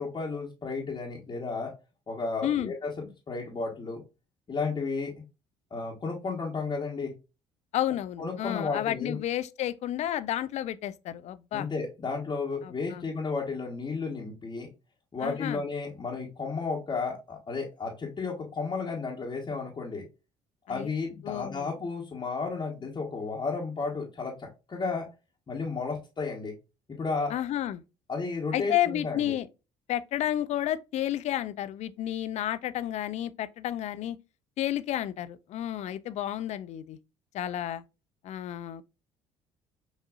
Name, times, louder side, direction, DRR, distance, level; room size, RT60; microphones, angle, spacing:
voice 1, 0.0-1.7 2.1-4.0 4.5-5.1 5.7-7.1 8.2-9.2 11.5-14.7 15.1-20.0 20.7-25.0 25.5-26.5 26.9-27.3 28.1-29.3, left 4 dB, 35° left, 1.2 m, -33 dB
voice 2, 2.4-2.7 7.7-11.7 12.6-13.0 15.2-15.6 20.7-20.9 21.2-21.7 27.3-27.8 28.5-29.5 29.9-34.2 34.6-37.0 37.3-37.8 38.2-38.8, left 12 dB, 55° left, 0.4 m, -31 dB
6.1 x 2.6 x 2.4 m
hypercardioid pair, 60°, 14 cm